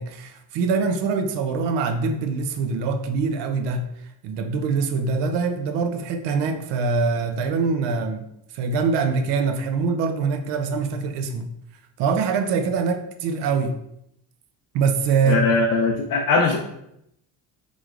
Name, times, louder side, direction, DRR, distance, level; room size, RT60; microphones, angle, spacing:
voice 1, 0.0-3.9 4.2-8.3 8.5-11.5 12.0-13.7 14.7-15.6, right 4 dB, 85° right, 7 dB, 0.6 m, -24 dB
voice 2, 15.2-16.6, left 3 dB, 55° left, 0 dB, 0.5 m, -20 dB
5.1 x 3.2 x 2.4 m, 0.78 s
cardioid pair, 140°, 41 cm